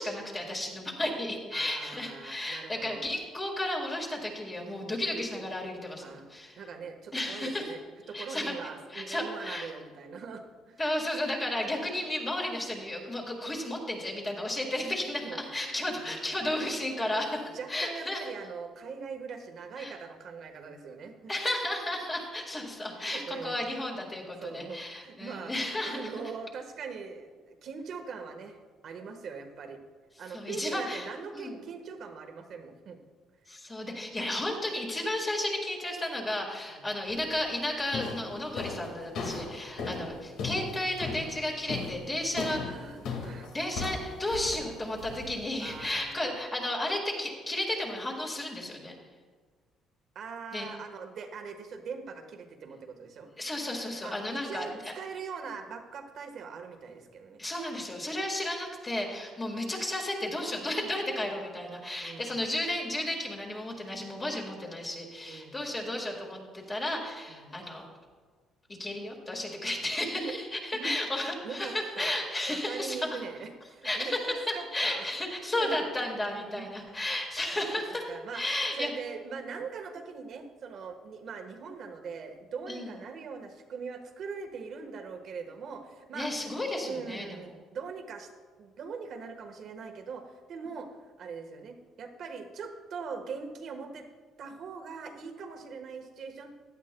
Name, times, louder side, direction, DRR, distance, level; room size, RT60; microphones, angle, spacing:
voice 1, 0.0-6.6 7.1-7.7 8.1-8.5 8.9-9.7 10.8-18.3 19.8-19.9 21.3-26.1 30.3-31.1 31.3-31.6 33.5-42.6 43.5-48.9 50.5-50.7 53.4-54.9 57.4-67.8 68.8-73.2 73.8-74.3 74.7-78.9 82.7-83.0 86.1-87.3, left 1 dB, 20° left, -1 dB, 1.9 m, -33 dB
voice 2, 1.5-3.0 6.0-6.3 6.6-7.8 8.1-10.8 15.2-16.6 17.1-17.3 17.5-21.3 23.0-23.6 24.4-28.6 28.8-29.8 30.2-33.0 36.7-36.9 39.8-40.1 42.5-43.5 45.6-46.2 50.1-53.3 54.0-57.4 62.0-62.4 65.3-65.6 67.3-67.6 70.1-70.4 70.8-70.9 71.4-72.2 72.5-75.1 75.4-75.8 76.3-76.7 78.1-78.4 78.8-86.3 86.8-88.3 88.6-90.9 91.2-94.0 94.4-96.5, right 5 dB, 50° right, 5 dB, 1.3 m, -41 dB
sound 1, 37.1-37.4 37.9-45.9, left 4 dB, 80° left, 1.9 m, -38 dB
16.5 x 11.0 x 2.3 m, 1.5 s
cardioid pair, 140°, 0 cm